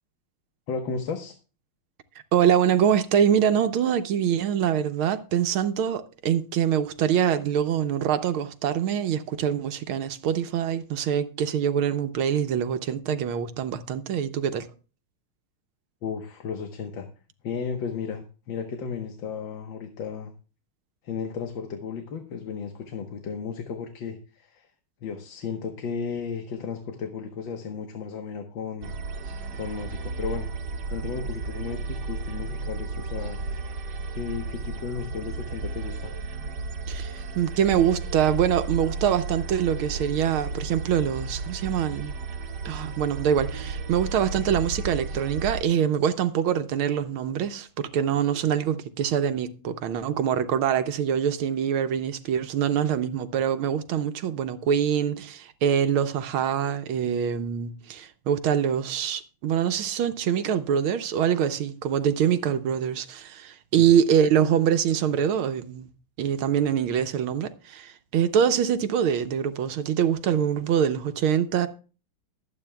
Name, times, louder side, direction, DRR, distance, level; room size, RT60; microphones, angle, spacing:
voice 1, 0.7-1.4 16.0-17.1 17.4-20.3 21.0-24.7 25.0-28.9 29.5-30.5 30.9-33.4 34.2-36.1 63.8-63.9, left 6 dB, 65° left, 1.8 m, -34 dB
voice 2, 2.3-14.7 36.9-42.2 42.6-65.9 66.2-71.7, right 8 dB, 80° right, 1.6 m, -24 dB
sound 1, 28.8-45.6, right 3 dB, 60° right, 1.6 m, -33 dB
22.0 x 8.9 x 2.3 m
omnidirectional pair, 2.4 m